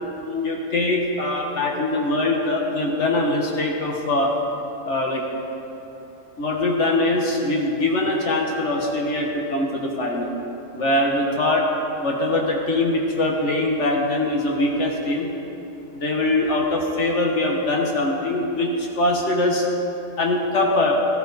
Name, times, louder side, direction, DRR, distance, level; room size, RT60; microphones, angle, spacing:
voice 1, 0.2-4.3 4.9-5.2 6.4-10.3 10.7-11.7 12.0-15.3 15.9-19.6 20.2-21.0, left 2 dB, 65° left, 0 dB, 1.5 m, -22 dB
14.5 x 13.0 x 4.0 m, 3.0 s
omnidirectional pair, 1.3 m